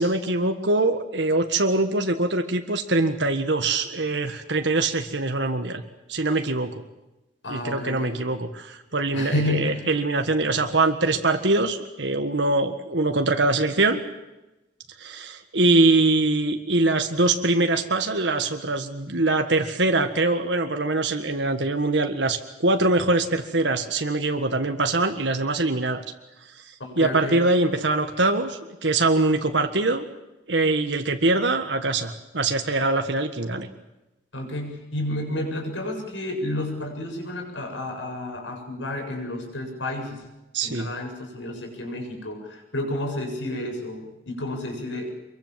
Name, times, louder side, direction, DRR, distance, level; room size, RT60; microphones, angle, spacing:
voice 1, 0.0-5.8 6.1-6.8 7.5-14.0 15.0-26.0 26.7-30.0 30.5-33.7 40.5-40.9, right 2 dB, 75° right, 6 dB, 1.7 m, -23 dB
voice 2, 7.4-8.1 9.1-9.9 26.8-27.4 34.3-40.2 40.6-45.2, left 1 dB, 90° left, 2 dB, 7.7 m, -31 dB
25.0 x 23.0 x 7.6 m, 0.99 s
head